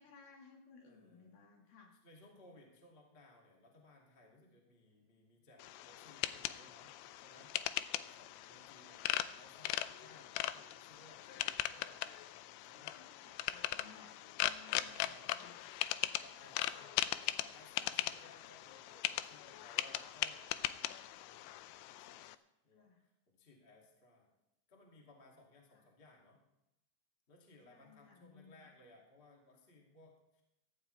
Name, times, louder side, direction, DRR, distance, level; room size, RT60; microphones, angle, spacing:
voice 1, 0.0-2.0 12.9-15.8 22.7-23.1 25.7-25.9 27.7-28.7, left 5 dB, 60° left, 1 dB, 3.4 m, -61 dB
voice 2, 0.8-1.4 2.0-6.9 7.2-13.0 13.3-13.6 14.7-15.6 16.1-22.2 22.6-24.3 24.7-26.4 27.3-30.4, left 2 dB, 20° left, -1 dB, 1.4 m, -62 dB
sound 1, 5.6-22.4, left 14 dB, 85° left, 2.8 m, -40 dB
16.5 x 14.0 x 3.4 m, 0.87 s
omnidirectional pair, 5.3 m